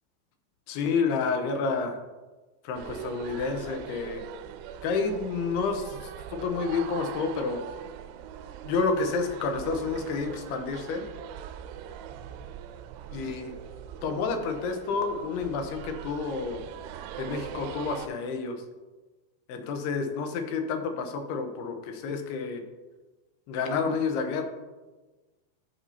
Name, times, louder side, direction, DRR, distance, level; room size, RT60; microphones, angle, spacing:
voice 1, 0.7-2.0 2.6-4.2 4.8-7.6 8.6-11.0 13.1-13.5 14.0-16.6 17.2-18.6 19.5-22.6 23.5-24.4, left 4 dB, 80° left, 6 dB, 2.7 m, -29 dB
sound 1, 2.7-18.1, right 9 dB, 85° right, 2.7 m, -41 dB
13.5 x 6.0 x 2.7 m, 1.2 s
omnidirectional pair, 4.9 m